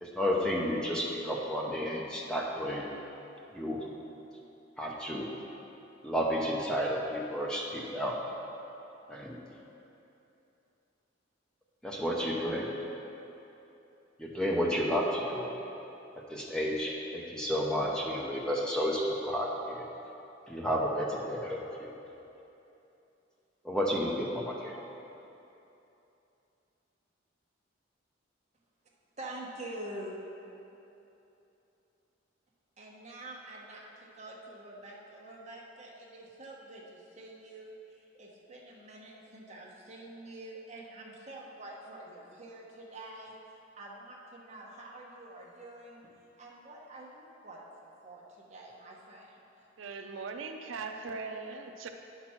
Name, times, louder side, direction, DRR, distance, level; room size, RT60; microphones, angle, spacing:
voice 1, 0.0-2.8 3.5-3.9 4.8-5.3 6.0-8.2 9.1-9.4 11.8-12.7 14.2-15.4 16.1-19.8 20.5-21.9 23.6-24.8, equal, 5° left, -2 dB, 0.7 m, -31 dB
voice 2, 29.2-30.2 32.8-43.3 43.8-49.4, right 1 dB, 35° right, -3 dB, 1.2 m, -47 dB
voice 3, 49.8-51.9, right 4 dB, 80° right, 5 dB, 0.5 m, -39 dB
9.6 x 6.0 x 4.4 m, 2.9 s
head